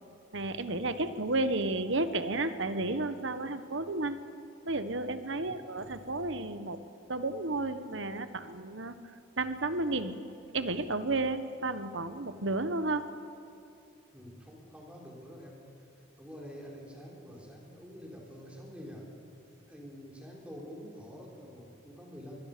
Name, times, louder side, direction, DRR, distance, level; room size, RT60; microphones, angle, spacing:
voice 1, 0.3-4.2 4.6-6.8 7.1-10.2 10.5-13.1, right 2 dB, 65° right, 11 dB, 1.2 m, -32 dB
voice 2, 14.1-15.9 16.2-19.1 19.7-22.4, equal, 5° right, -2 dB, 4.2 m, -47 dB
24.0 x 20.5 x 6.8 m, 2.6 s
head